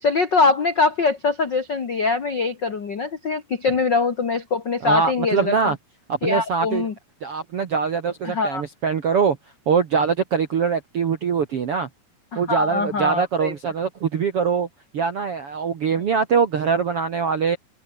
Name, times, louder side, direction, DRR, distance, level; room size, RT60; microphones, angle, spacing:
voice 1, 0.0-5.5 6.2-6.9 8.2-8.6 12.3-13.5, left 4 dB, 85° left, 0.9 m, -22 dB
voice 2, 4.8-5.8 6.1-6.9 7.2-9.4 9.6-11.9 12.3-14.7 14.9-17.6, right 6 dB, 65° right, 1.4 m, -23 dB
omnidirectional pair, 4.9 m